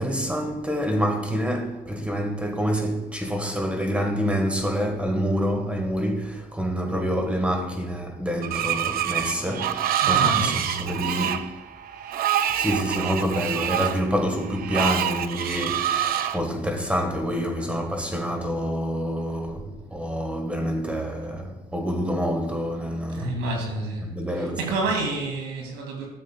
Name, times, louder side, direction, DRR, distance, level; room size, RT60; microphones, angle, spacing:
voice 1, 0.0-11.6 12.5-23.3 24.0-24.6, equal, 5° right, 1.5 m, -27 dB
Screech, 8.4-16.4, right 10 dB, 60° right, 0.6 m, -26 dB
voice 2, 10.0-10.9 23.1-24.1 24.3-26.1, right 2 dB, 90° right, 2.4 m, -29 dB
13.0 x 7.6 x 2.4 m
cardioid pair, 110°, 17 cm